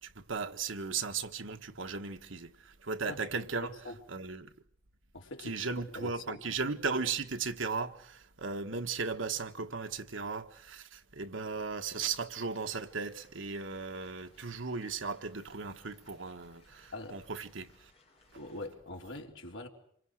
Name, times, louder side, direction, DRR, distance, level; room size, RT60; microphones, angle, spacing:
voice 1, 0.0-3.7 4.1-4.5 5.4-17.9, right 4 dB, 90° right, 1.5 m, -36 dB
voice 2, 3.1-4.0 5.1-5.6 5.9-6.4 16.9-17.2 18.4-19.7, left 2 dB, 80° left, 3.7 m, -43 dB
sound 1, 12.4-18.7, left 3 dB, 30° left, 5.3 m, -65 dB
27.5 x 23.5 x 6.5 m
head